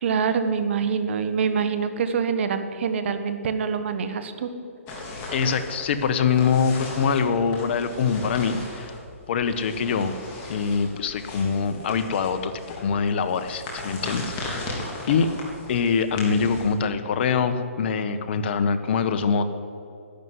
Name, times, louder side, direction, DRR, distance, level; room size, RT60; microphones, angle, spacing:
voice 1, 0.0-4.5, right 6 dB, 55° right, 9 dB, 1.6 m, -25 dB
sound 1, 4.9-16.7, left 2 dB, 25° left, 3.5 m, -37 dB
voice 2, 5.3-9.0 9.3-10.1 10.5-15.3 15.7-19.4, left 6 dB, 50° left, 9 dB, 1.3 m, -24 dB
12.0 x 11.0 x 9.9 m, 2.7 s
hypercardioid pair, 150°, 8 cm